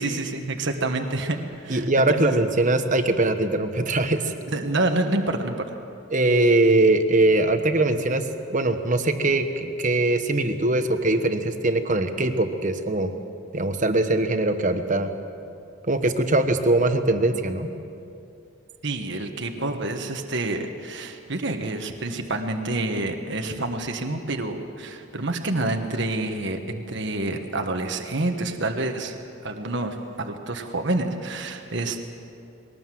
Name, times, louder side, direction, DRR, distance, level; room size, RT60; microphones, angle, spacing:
voice 1, 0.0-2.3 4.5-5.8 18.8-29.2 29.4-32.0, right 2 dB, 60° right, 5 dB, 1.5 m, -28 dB
voice 2, 1.7-4.3 6.1-13.1 13.5-15.1 15.9-17.7, right 2 dB, 40° right, 7 dB, 1.2 m, -21 dB
21.5 x 19.0 x 7.7 m, 2.6 s
head